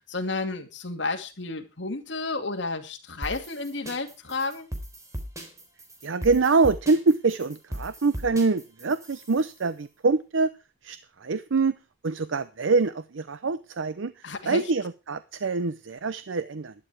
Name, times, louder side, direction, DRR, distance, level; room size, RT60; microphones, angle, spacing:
voice 1, 0.1-4.7 14.2-14.6, left 3 dB, 70° left, 2.4 m, -31 dB
sound 1, 3.2-9.6, equal, 15° right, 3.5 m, -38 dB
voice 2, 6.0-10.5 10.8-11.8 12.0-14.1 14.4-16.7, right 3 dB, 90° right, 0.7 m, -25 dB
12.0 x 11.0 x 4.8 m
head